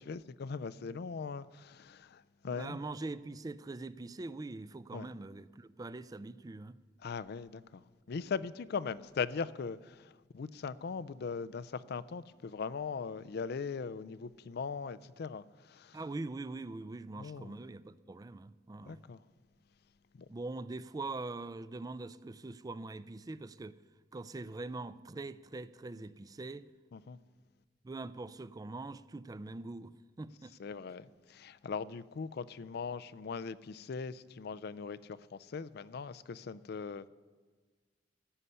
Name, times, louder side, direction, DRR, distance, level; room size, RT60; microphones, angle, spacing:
voice 1, 0.0-2.8 4.9-5.1 7.0-7.8 8.1-16.0 17.2-17.5 18.8-19.2 20.1-20.3 26.9-27.2 30.6-37.1, left 5 dB, 60° left, 0.4 m, -40 dB
voice 2, 2.5-6.8 15.9-19.0 20.3-23.8 24.1-26.7 27.8-30.5, right 2 dB, 20° right, 0.4 m, -43 dB
14.5 x 5.6 x 9.6 m
head